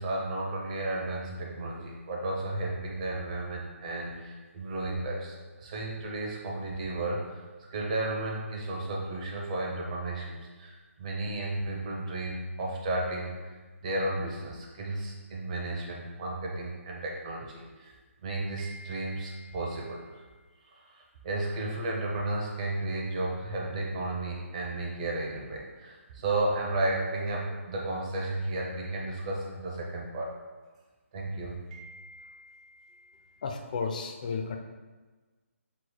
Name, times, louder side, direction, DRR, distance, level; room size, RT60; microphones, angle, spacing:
voice 1, 0.0-7.4 7.7-13.5 13.8-18.0 18.2-20.3 20.7-30.3 31.1-33.4, right 2 dB, 30° right, -2 dB, 0.7 m, -33 dB
voice 2, 33.4-34.6, left 5 dB, 35° left, 4 dB, 0.4 m, -33 dB
6.2 x 3.0 x 2.2 m, 1.3 s
hypercardioid pair, 160°, 8 cm